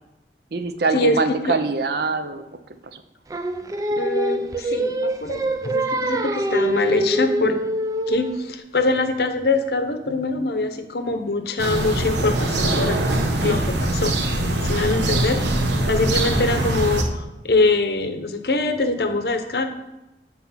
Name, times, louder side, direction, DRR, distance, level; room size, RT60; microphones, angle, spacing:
voice 1, 0.5-2.4 2.9-3.0 14.9-15.2, right 4 dB, 60° right, 9 dB, 0.6 m, -24 dB
Singing, 3.3-8.5, equal, 20° right, 0.3 m, -24 dB
voice 2, 4.0-7.6 8.1-13.0 13.4-14.1 14.6-15.4 15.8-17.1 17.4-19.7, left 2 dB, 60° left, 7 dB, 0.7 m, -23 dB
sound 1, 11.6-17.0, right 1 dB, 80° right, 1.0 m, -22 dB
8.0 x 4.2 x 5.6 m, 0.98 s
head